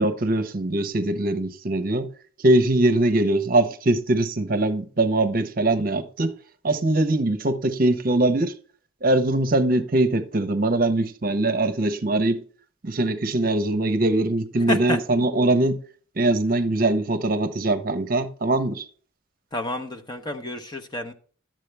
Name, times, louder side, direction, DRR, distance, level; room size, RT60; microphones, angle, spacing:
voice 1, 0.0-2.1 2.4-6.3 6.6-8.5 9.0-12.4 12.8-15.8 16.2-18.9, right 2 dB, 45° right, 0.8 m, -22 dB
voice 2, 14.7-15.0 19.5-21.1, left 2 dB, 20° left, 0.8 m, -29 dB
12.0 x 7.5 x 3.3 m
head